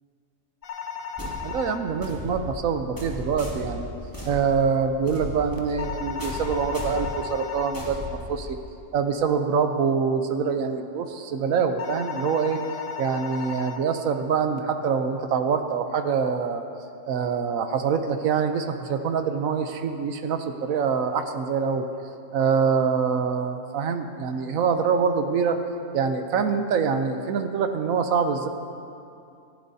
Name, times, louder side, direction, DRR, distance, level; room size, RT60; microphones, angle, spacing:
sound 1, 0.6-1.8 5.8-7.8 11.8-13.8, left 7 dB, 80° left, 1.2 m, -35 dB
sound 2, 1.2-8.8, left 1 dB, 15° left, 2.8 m, -36 dB
voice 1, 1.4-3.9 4.3-8.6 8.9-12.6 13.0-16.7 17.1-21.9 22.3-25.6 25.9-28.5, right 6 dB, 90° right, 6 dB, 1.2 m, -25 dB
27.0 x 11.5 x 2.8 m, 2.6 s
omnidirectional pair, 1.4 m